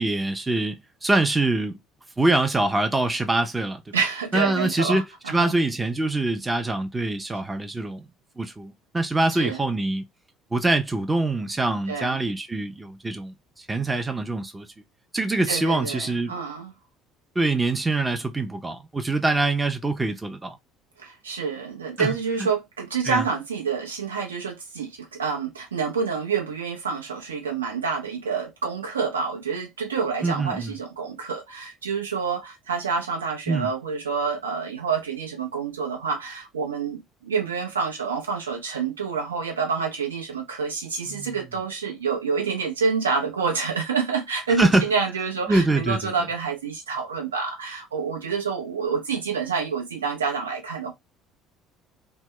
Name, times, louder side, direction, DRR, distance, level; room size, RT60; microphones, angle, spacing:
voice 1, 0.0-1.8 2.2-4.0 4.3-8.1 8.4-10.0 10.5-14.7 15.1-16.4 17.4-20.6 22.0-22.5 23.0-23.3 30.2-30.7 33.5-33.7 41.1-41.4 44.6-44.8 45.5-46.1, right 2 dB, 15° right, 0.5 m, -24 dB
voice 2, 3.9-5.5 9.4-9.6 11.9-12.2 15.5-16.7 21.0-50.9, right 5 dB, 80° right, 0.7 m, -28 dB
2.1 x 2.1 x 3.6 m
figure-of-eight pair, 55°, 0 cm